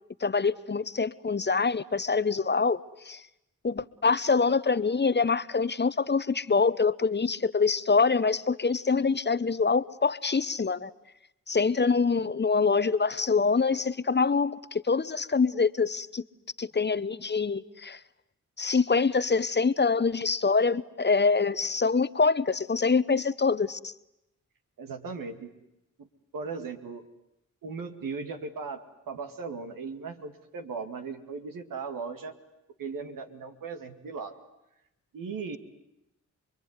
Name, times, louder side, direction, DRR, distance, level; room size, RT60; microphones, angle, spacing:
voice 1, 0.2-2.8 3.1-3.2 3.6-10.9 11.5-16.2 16.6-18.0 18.6-23.9, left 4 dB, 35° left, 1.0 m, -25 dB
voice 2, 24.8-25.5 26.0-26.1 26.3-27.0 27.6-32.3 32.8-34.4 35.1-35.6, right 4 dB, 85° right, 2.3 m, -37 dB
27.5 x 22.0 x 9.7 m
cardioid pair, 45°, 32 cm